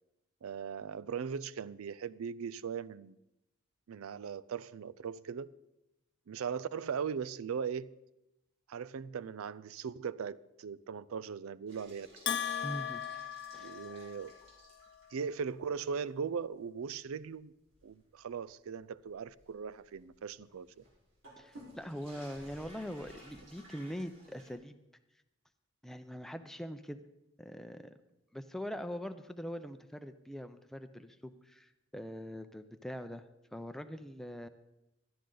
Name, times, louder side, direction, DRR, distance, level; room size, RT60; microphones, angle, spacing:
voice 1, 0.4-3.2 3.9-5.5 6.3-7.9 8.7-12.1 13.6-14.3 15.1-17.5 17.8-20.8, right 6 dB, 90° right, 0.4 m, -39 dB
sound 1, 11.7-15.3 15.7-15.8 16.3-16.4 16.9-24.5, right 1 dB, 65° right, 4.4 m, -56 dB
Bell, 12.3-14.4, left 9 dB, 55° left, 0.6 m, -37 dB
voice 2, 12.6-13.0 13.5-13.9 21.4-24.7 25.8-27.0 27.4-27.9 28.3-33.2 33.5-34.5, equal, ahead, 0.5 m, -43 dB
17.0 x 12.0 x 3.9 m
head